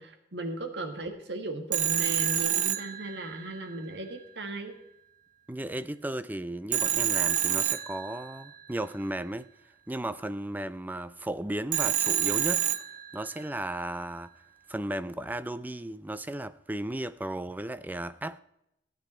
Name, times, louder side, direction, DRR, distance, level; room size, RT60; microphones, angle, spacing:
voice 1, 0.0-4.7, right 2 dB, 65° right, 1.8 m, -36 dB
Telephone, 1.7-3.6 6.7-8.5 11.7-13.4, right 11 dB, 45° right, 0.7 m, -28 dB
voice 2, 5.5-9.5 9.9-12.7 13.1-14.3 14.7-18.4, right 1 dB, 10° right, 0.5 m, -35 dB
16.0 x 9.2 x 4.4 m
head